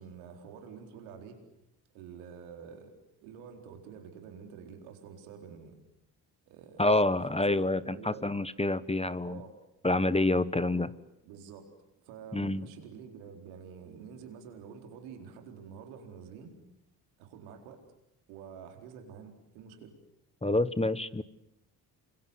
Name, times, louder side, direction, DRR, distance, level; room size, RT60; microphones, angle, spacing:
voice 1, 0.0-1.4 1.9-2.9 3.2-5.8 6.5-6.8 7.2-8.2 9.2-9.5 10.6-10.9 11.2-11.7 12.1-16.5 17.2-17.8 18.3-19.9, right 7 dB, 85° right, 4 dB, 4.3 m, -48 dB
voice 2, 6.8-9.4 9.8-10.9 12.3-12.7 20.4-21.2, left 2 dB, 15° left, 16 dB, 1.4 m, -27 dB
28.5 x 25.5 x 8.1 m, 0.81 s
hypercardioid pair, 50°, 47 cm